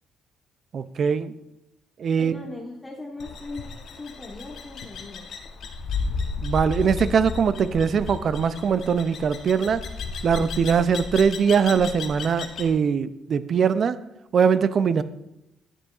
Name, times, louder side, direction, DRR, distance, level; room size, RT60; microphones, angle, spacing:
voice 1, 0.7-1.3 2.0-2.4 6.4-9.8 10.2-14.0 14.3-15.0, right 6 dB, 55° right, 14 dB, 0.4 m, -21 dB
voice 2, 2.2-5.4, left 2 dB, 15° left, -3 dB, 1.1 m, -39 dB
sound 1, 3.2-12.7, left 4 dB, 65° left, 0.8 m, -33 dB
9.8 x 6.8 x 2.4 m, 0.88 s
cardioid pair, 80°, 0 cm